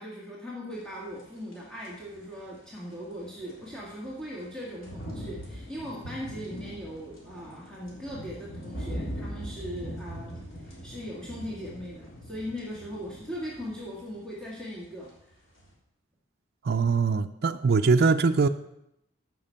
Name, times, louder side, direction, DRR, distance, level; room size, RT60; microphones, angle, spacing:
voice 1, 0.0-15.1, equal, 5° left, 1.8 m, -39 dB
sound 1, 1.1-2.6 2.9-15.2 15.6-15.7, equal, 85° left, 3.6 m, -41 dB
voice 2, 16.6-18.5, right 4 dB, 50° right, 0.4 m, -22 dB
14.0 x 5.8 x 5.6 m
head